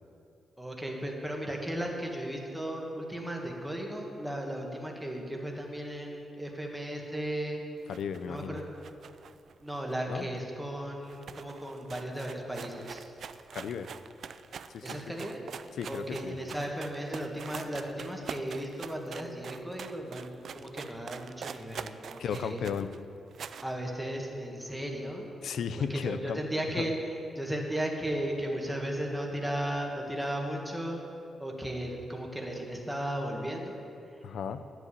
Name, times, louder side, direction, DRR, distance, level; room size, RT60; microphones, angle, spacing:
voice 1, 0.6-7.6 8.2-8.6 9.6-13.1 14.8-15.4 15.8-22.7 23.6-25.3 25.8-27.0 27.3-31.0 31.4-33.8 34.1-34.2, right 1 dB, 5° right, 0 dB, 1.6 m, -35 dB
sound 1, 7.8-10.4 10.7-10.8 11.0-23.7, right 7 dB, 55° right, 0.4 m, -44 dB
voice 2, 7.9-8.6 10.1-10.3 13.5-13.9 14.7-15.0 15.7-16.4 22.2-22.9 25.4-26.4 26.8-26.9 34.2-34.6, left 7 dB, 70° left, 11 dB, 0.6 m, -34 dB
11.0 x 8.0 x 8.5 m, 2.7 s
wide cardioid pair, 145°, 0 cm